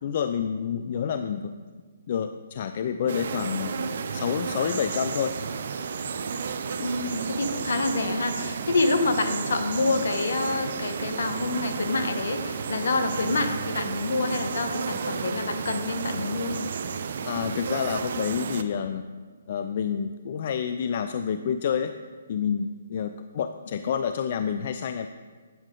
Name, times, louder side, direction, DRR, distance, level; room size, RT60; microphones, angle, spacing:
voice 1, 0.0-1.5 2.1-3.8 4.1-5.3 17.3-19.0 19.5-21.9 22.3-25.1, left 7 dB, 50° left, 9 dB, 0.3 m, -28 dB
sound 1, 3.1-18.6, right 6 dB, 60° right, 0.5 m, -32 dB
voice 2, 6.8-16.5, left 3 dB, 70° left, 7 dB, 1.0 m, -27 dB
9.1 x 7.3 x 3.7 m, 1.5 s
hypercardioid pair, 145°, 0 cm